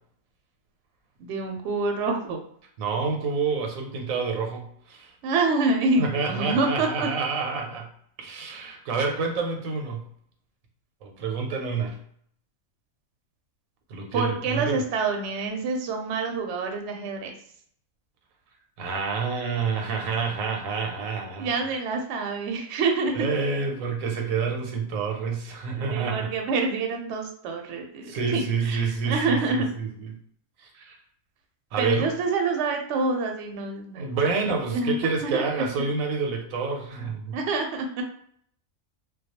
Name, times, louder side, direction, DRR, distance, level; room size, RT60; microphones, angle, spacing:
voice 1, 1.2-2.4 5.2-7.1 14.1-17.3 21.4-23.3 25.7-29.7 31.8-34.4 34.7-35.4 37.3-38.0, right 3 dB, 65° right, 3 dB, 0.8 m, -27 dB
voice 2, 2.8-5.1 6.0-7.9 8.2-10.1 11.0-12.0 13.9-14.8 18.8-21.5 23.1-26.3 28.1-29.9 30.7-31.0 31.7-32.1 34.0-37.4, right 5 dB, 85° right, 2 dB, 1.0 m, -28 dB
2.2 x 2.2 x 2.8 m, 0.64 s
omnidirectional pair, 1.4 m